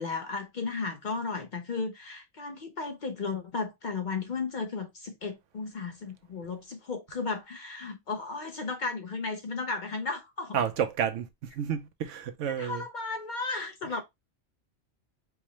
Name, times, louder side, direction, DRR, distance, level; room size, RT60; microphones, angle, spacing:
voice 1, 0.0-10.6 12.5-14.0, left 4 dB, 50° left, 0.6 m, -34 dB
voice 2, 10.5-11.3 11.6-12.8, right 8 dB, 80° right, 1.0 m, -30 dB
4.6 x 2.1 x 3.0 m
omnidirectional pair, 1.3 m